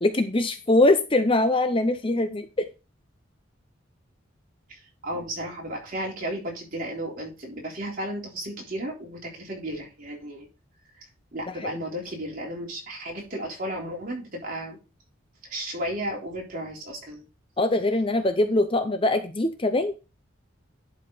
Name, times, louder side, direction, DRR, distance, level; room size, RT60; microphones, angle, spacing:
voice 1, 0.0-2.7 11.6-11.8 17.6-20.0, left 2 dB, 25° left, 8 dB, 0.6 m, -23 dB
voice 2, 4.7-10.5 11.3-14.8 15.5-17.2, right 1 dB, 40° right, -2 dB, 3.7 m, -34 dB
11.0 x 4.9 x 4.0 m, 0.30 s
head